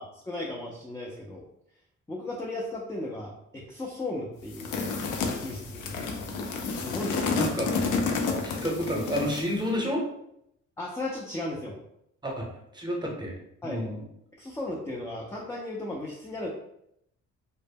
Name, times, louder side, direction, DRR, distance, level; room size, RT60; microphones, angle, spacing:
voice 1, 0.0-1.4 2.1-4.8 5.3-6.0 6.8-7.3 10.8-11.8 13.6-13.9 14.4-16.5, left 2 dB, 10° left, -3 dB, 0.3 m, -36 dB
sound 1, 4.5-9.6, left 4 dB, 80° left, 0.5 m, -30 dB
voice 2, 7.3-7.7 8.4-10.0 12.2-12.5 12.7-13.3 13.6-14.0, equal, 15° right, -1 dB, 0.7 m, -30 dB
2.0 x 2.0 x 3.3 m, 0.77 s
cardioid pair, 90°, 30 cm